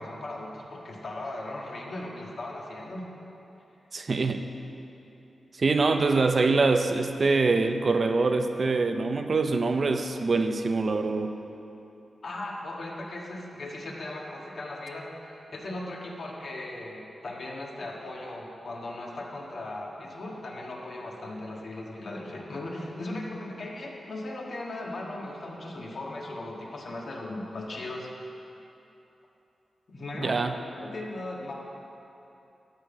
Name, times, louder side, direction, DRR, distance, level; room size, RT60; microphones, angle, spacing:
voice 1, 0.0-3.1 12.2-15.1 15.5-28.1 29.9-31.5, left 2 dB, 55° left, -2 dB, 1.7 m, -38 dB
voice 2, 3.9-4.5 5.6-11.4 30.2-30.5, right 3 dB, 40° right, 7 dB, 0.5 m, -24 dB
12.5 x 5.7 x 8.5 m, 2.9 s
wide cardioid pair, 160°, 0 cm